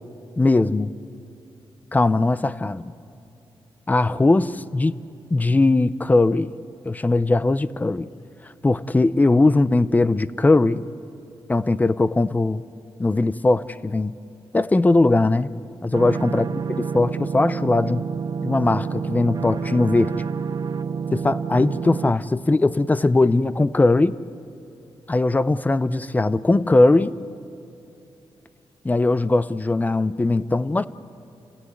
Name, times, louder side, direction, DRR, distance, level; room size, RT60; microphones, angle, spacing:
voice 1, 0.4-0.9 1.9-2.8 3.9-4.9 5.3-6.5 6.8-8.1 8.6-10.9 11.5-12.6 13.0-14.2 14.5-15.5 15.8-16.5 16.9-18.0 18.4-20.1 21.1-24.2 25.1-27.1 28.8-30.9, left 2 dB, 20° left, 0.6 m, -19 dB
sound 1, 15.9-22.1, right 6 dB, 45° right, 0.6 m, -28 dB
29.5 x 16.0 x 9.5 m
wide cardioid pair, 115°, 9 cm